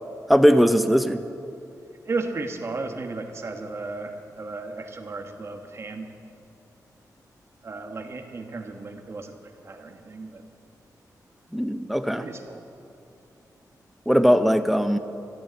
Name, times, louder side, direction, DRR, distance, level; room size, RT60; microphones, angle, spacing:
voice 1, 0.3-1.2 11.5-12.3 14.1-15.0, equal, ahead, 9 dB, 0.7 m, -19 dB
voice 2, 2.1-6.1 7.6-9.3 9.6-10.4 12.2-12.6, right 3 dB, 40° right, 5 dB, 1.4 m, -34 dB
13.5 x 12.0 x 8.1 m, 2.6 s
wide cardioid pair, 135°, 7 cm